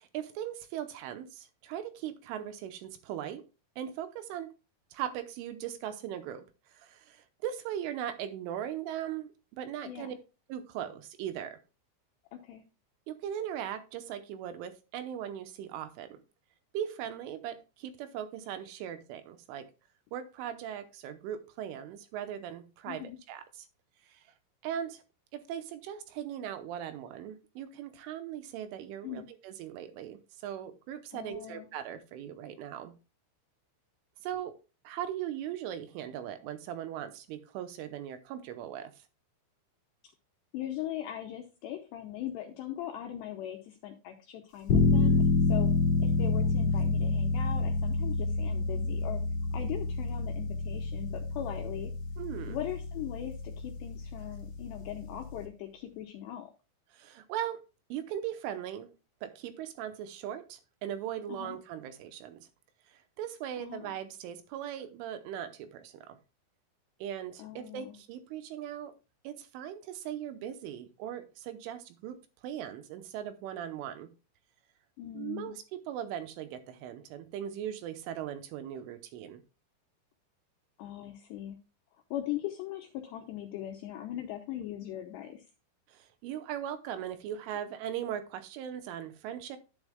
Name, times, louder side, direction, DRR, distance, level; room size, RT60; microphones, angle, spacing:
voice 1, 0.0-3.4 3.8-4.5 4.9-10.2 10.5-11.6 13.1-16.2 16.7-19.7 20.1-23.7 24.0-24.3 24.6-25.0 25.3-32.9 34.2-34.6 34.8-39.0 52.2-52.6 56.9-57.6 57.9-58.9 59.2-62.5 62.9-66.2 67.0-68.9 69.2-74.1 75.1-79.4 85.9-89.6, right 10 dB, 85° right, 3.1 m, -39 dB
voice 2, 9.8-10.2 12.3-12.6 22.9-23.2 29.0-29.3 31.1-31.7 40.5-45.2 45.5-45.7 46.0-49.2 49.5-51.9 52.5-56.5 61.3-61.6 63.6-64.0 67.4-68.0 75.0-75.6 80.8-81.6 82.1-85.5, left 12 dB, 85° left, 2.5 m, -40 dB
sound 1, 44.7-55.4, left 4 dB, 55° left, 1.9 m, -28 dB
10.5 x 9.9 x 2.3 m
omnidirectional pair, 5.9 m